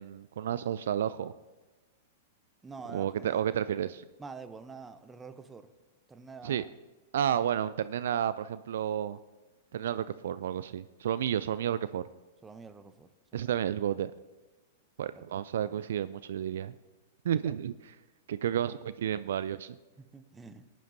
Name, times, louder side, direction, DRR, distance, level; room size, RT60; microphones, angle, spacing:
voice 1, 0.0-1.3 2.9-4.0 6.4-6.6 7.1-9.2 9.7-12.1 13.3-14.1 15.0-16.7 17.2-17.7 18.3-19.8, right 9 dB, 65° right, 16 dB, 0.3 m, -31 dB
voice 2, 2.6-3.5 4.2-5.7 6.1-6.7 12.4-13.1 15.2-15.3 15.6-15.9 17.4-17.6 20.0-20.6, right 4 dB, 15° right, 11 dB, 0.7 m, -47 dB
18.5 x 10.5 x 2.7 m, 1.2 s
figure-of-eight pair, 100°, 0 cm